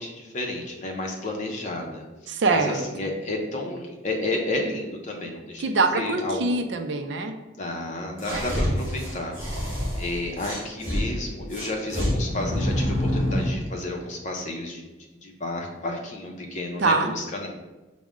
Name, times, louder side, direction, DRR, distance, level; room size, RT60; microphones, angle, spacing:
voice 1, 0.0-5.6 5.9-6.6 7.5-14.8 15.2-17.5, left 2 dB, 35° left, 1 dB, 0.6 m, -31 dB
voice 2, 2.3-2.8 5.6-7.4 8.3-8.4 16.8-17.1, right 3 dB, 60° right, 7 dB, 0.4 m, -23 dB
sound 1, 8.2-11.0 11.5-13.6, equal, 10° right, 1.2 m, -27 dB
6.0 x 2.1 x 3.6 m, 1.1 s
head